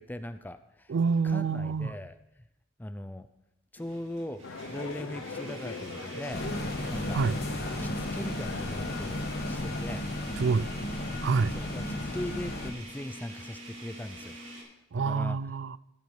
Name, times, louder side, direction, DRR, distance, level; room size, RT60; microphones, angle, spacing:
voice 1, 0.0-0.9 1.2-2.1 2.8-3.3 3.7-6.4 6.9-7.2 7.8-10.0 11.5-11.8 12.1-14.4 15.0-15.4, left 1 dB, 10° left, 0.4 m, -39 dB
voice 2, 0.9-1.9 7.1-7.4 10.4-10.7 11.2-11.5 14.9-15.8, right 5 dB, 60° right, 0.4 m, -27 dB
sound 1, 1.1-1.2 1.7-1.8 3.8-14.6, right 1 dB, 80° right, 5.2 m, -45 dB
sound 2, 4.4-9.8, left 3 dB, 80° left, 0.9 m, -40 dB
sound 3, 6.3-12.7, left 1 dB, 50° left, 1.2 m, -34 dB
16.0 x 7.0 x 4.8 m
head